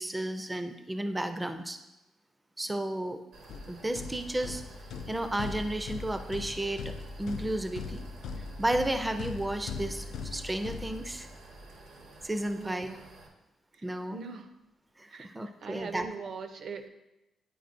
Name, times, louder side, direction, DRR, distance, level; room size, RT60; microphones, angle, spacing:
voice 1, 0.0-1.8 2.6-3.2 3.7-4.6 5.1-6.8 7.2-8.1 8.6-11.3 12.2-12.9 13.8-14.2 15.0-16.1, right 1 dB, 10° right, 7 dB, 0.4 m, -32 dB
sound 1, 3.3-13.3, right 2 dB, 80° right, 1.1 m, -52 dB
sound 2, 3.5-11.5, left 4 dB, 80° left, 0.4 m, -40 dB
voice 2, 12.5-13.1 13.7-14.5 15.1-16.9, right 5 dB, 60° right, 8 dB, 0.6 m, -42 dB
9.2 x 4.8 x 2.5 m, 0.95 s
cardioid pair, 130°, 0 cm